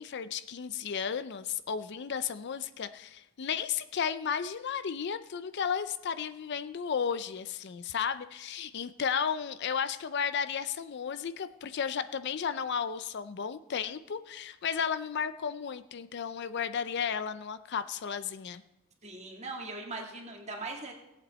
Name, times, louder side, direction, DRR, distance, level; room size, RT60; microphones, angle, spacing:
voice 1, 0.0-18.6, left 7 dB, 50° left, 13 dB, 0.4 m, -33 dB
voice 2, 19.0-20.9, right 3 dB, 30° right, 1 dB, 1.8 m, -40 dB
18.0 x 8.2 x 4.2 m, 0.95 s
head